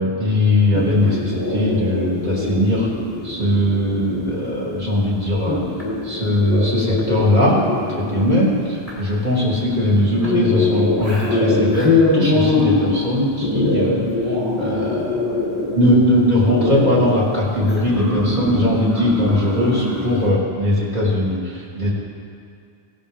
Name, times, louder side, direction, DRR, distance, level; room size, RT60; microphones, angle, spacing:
voice 1, 0.0-2.9 3.2-5.6 6.0-7.6 8.0-14.1 14.6-15.2 15.7-21.9, left 1 dB, 40° right, -7 dB, 3.1 m, -19 dB
sound 1, 0.7-20.3, left 2 dB, 20° right, 3.9 m, -23 dB
19.0 x 11.5 x 3.7 m, 2.3 s
omnidirectional pair, 1.1 m